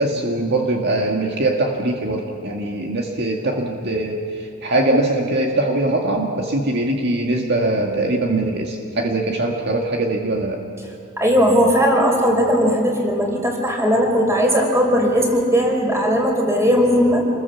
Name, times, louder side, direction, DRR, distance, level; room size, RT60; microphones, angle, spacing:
voice 1, 0.0-10.6, right 2 dB, 50° right, 1 dB, 1.8 m, -22 dB
voice 2, 11.2-17.2, equal, 15° right, 1 dB, 4.5 m, -17 dB
28.0 x 21.5 x 7.3 m, 2.6 s
head